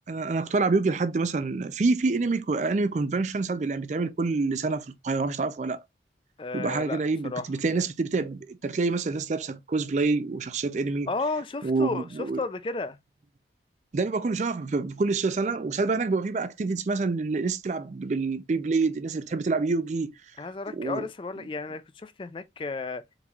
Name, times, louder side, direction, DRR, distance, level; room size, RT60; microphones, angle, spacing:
voice 1, 0.1-5.8 6.5-11.1 11.6-12.4 13.9-20.1 20.7-21.1, right 3 dB, 40° right, 0.4 m, -27 dB
voice 2, 6.4-7.4 11.1-13.0 20.4-23.0, left 3 dB, 30° left, 0.4 m, -33 dB
4.3 x 4.0 x 2.3 m
head